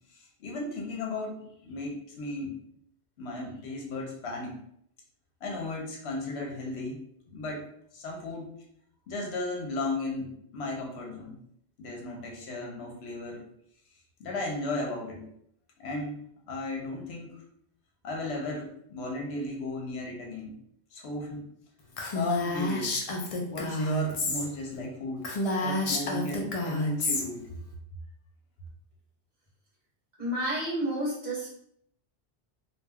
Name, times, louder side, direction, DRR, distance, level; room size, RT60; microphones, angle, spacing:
voice 1, 0.1-2.6 3.2-4.6 5.4-7.7 7.9-8.5 9.1-11.3 11.8-13.4 14.2-15.2 15.8-16.2 16.5-17.3 18.0-20.5 20.9-21.5 22.1-23.0 23.4-25.3 25.6-27.5, left 2 dB, 70° left, 0 dB, 0.9 m, -35 dB
Female speech woman speaking, 22.0-24.4 24.8-24.9 25.2-27.2, left 1 dB, 55° left, 0.4 m, -29 dB
voice 2, 30.2-31.5, right 1 dB, 45° right, -5 dB, 1.0 m, -30 dB
2.3 x 2.2 x 3.4 m, 0.69 s
omnidirectional pair, 1.1 m